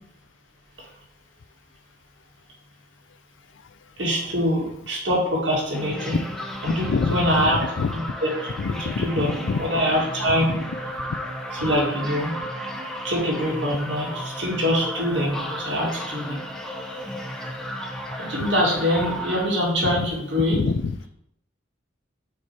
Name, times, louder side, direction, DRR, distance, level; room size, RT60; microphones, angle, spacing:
voice 1, 4.0-6.2 6.6-7.6 7.9-10.6 11.5-12.3 13.0-16.4 18.2-20.6, equal, 70° right, -4 dB, 2.0 m, -24 dB
sound 1, 5.7-19.5, equal, 5° left, 0.6 m, -34 dB
voice 2, 6.7-7.5 7.8-7.9 8.6-9.6 11.6-11.7 20.5-20.9, left 4 dB, 75° left, 12 dB, 0.4 m, -26 dB
6.6 x 3.0 x 4.6 m, 0.76 s
head